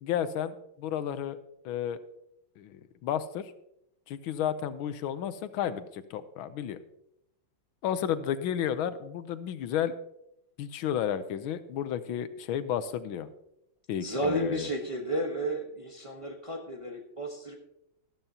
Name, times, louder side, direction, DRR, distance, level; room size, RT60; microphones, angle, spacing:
voice 1, 0.0-1.4 1.6-2.0 2.6-3.5 4.1-6.8 7.8-9.9 10.6-13.3 13.9-14.7, left 9 dB, 85° left, 12 dB, 1.5 m, -32 dB
voice 2, 13.9-17.5, right 1 dB, 20° right, 1 dB, 1.0 m, -32 dB
13.5 x 12.5 x 2.8 m, 0.80 s
omnidirectional pair, 2.2 m